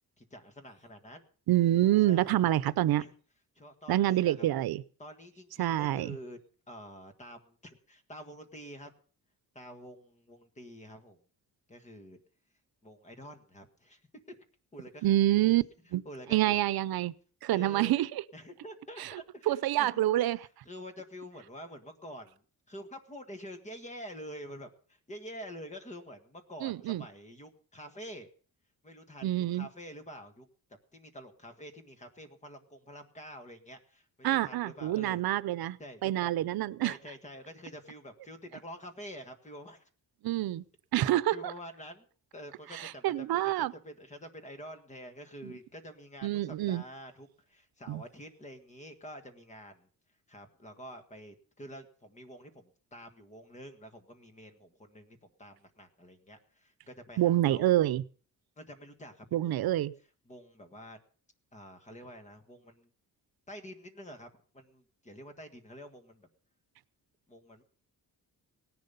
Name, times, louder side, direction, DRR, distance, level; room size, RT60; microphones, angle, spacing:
voice 1, 0.2-1.3 2.1-2.5 3.0-3.1 3.5-4.4 5.0-6.4 6.7-8.9 9.5-11.2 11.7-12.2 12.8-14.4 14.7-15.2 16.0-16.6 17.5-17.9 18.3-20.0 20.4-22.4 22.7-28.3 28.8-30.5 30.9-35.2 35.8-36.3 36.8-39.9 41.3-42.1 42.3-49.9 50.3-57.6 58.6-59.5 60.2-61.0 61.5-62.9 63.5-66.3 67.3-67.6, equal, 20° left, 7 dB, 1.6 m, -48 dB
voice 2, 1.5-3.0 3.9-4.8 5.6-6.2 15.0-15.6 15.9-16.0 16.3-17.1 17.4-18.2 19.0-19.1 19.5-20.5 26.6-27.0 29.2-29.7 34.2-37.0 40.2-40.6 40.9-41.5 42.7-43.7 45.4-45.5 46.2-46.8 47.9-48.0 57.2-58.0 59.3-59.9, right 14 dB, 90° right, 16 dB, 0.7 m, -27 dB
18.0 x 10.5 x 5.5 m, 0.42 s
wide cardioid pair, 175°, 36 cm